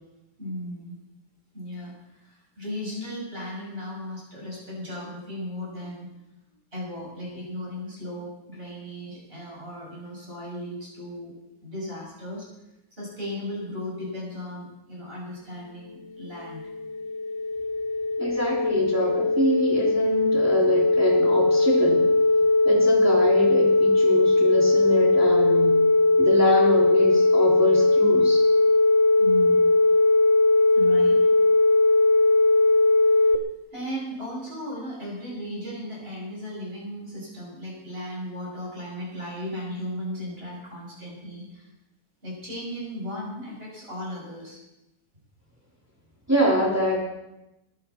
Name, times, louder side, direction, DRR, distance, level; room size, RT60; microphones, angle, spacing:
voice 1, 0.4-1.0 1.5-6.1 6.7-11.3 11.6-12.5 12.9-16.6 29.1-29.7 30.7-31.3 33.2-33.3 33.7-41.7 42.2-44.6, equal, 35° right, -5 dB, 8.2 m, -36 dB
sound 1, 16.3-33.3, left 2 dB, 50° left, 1.3 m, -19 dB
voice 2, 18.2-22.1 22.6-25.8 26.2-28.4 46.3-47.0, equal, 10° right, -3 dB, 3.0 m, -25 dB
22.0 x 12.5 x 4.5 m, 0.93 s
omnidirectional pair, 1.7 m